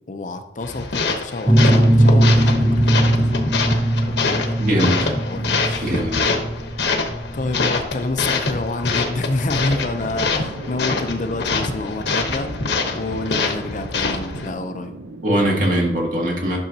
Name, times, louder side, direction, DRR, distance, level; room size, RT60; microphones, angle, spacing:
voice 1, 0.1-3.5 4.0-4.6 5.3-5.9 7.3-12.5 12.9-15.0, left 2 dB, 45° left, 8 dB, 0.6 m, -28 dB
sound 1, 0.6-14.5, left 4 dB, 70° left, 1.1 m, -25 dB
sound 2, 1.5-10.9, right 1 dB, 10° right, 0.5 m, -19 dB
voice 2, 4.6-5.2 5.8-6.4 15.2-16.6, equal, 50° right, -1 dB, 1.9 m, -21 dB
sound 3, 9.7-15.9, right 2 dB, 85° right, 0.7 m, -38 dB
10.5 x 6.3 x 2.8 m, 0.87 s
head